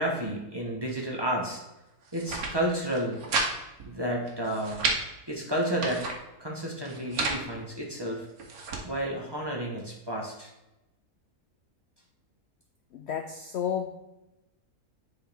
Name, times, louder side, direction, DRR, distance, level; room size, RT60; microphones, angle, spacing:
voice 1, 0.0-1.6 2.1-3.2 3.8-4.9 5.3-6.1 6.4-8.3 8.8-10.5, right 1 dB, 20° right, -2 dB, 1.0 m, -31 dB
sound 1, 2.0-2.5 2.9-3.5 3.8-3.9 4.3-5.0 5.5-6.2 6.8-7.4 8.1-8.8, right 3 dB, 65° right, 1.4 m, -31 dB
voice 2, 12.9-13.9, left 8 dB, 75° left, 5 dB, 0.6 m, -32 dB
10.5 x 3.9 x 3.4 m, 0.96 s
omnidirectional pair, 1.7 m